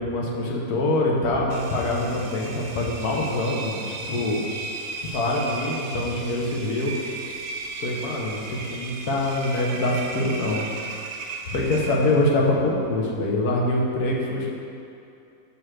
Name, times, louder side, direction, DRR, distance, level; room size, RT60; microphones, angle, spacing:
voice 1, 0.0-4.4 5.0-6.9 7.8-10.6 11.5-14.5, left 1 dB, 75° left, -3 dB, 1.6 m, -24 dB
Engine, 1.5-12.3, right 3 dB, 65° right, 1.1 m, -36 dB
5.6 x 5.5 x 6.4 m, 2.6 s
omnidirectional pair, 1.7 m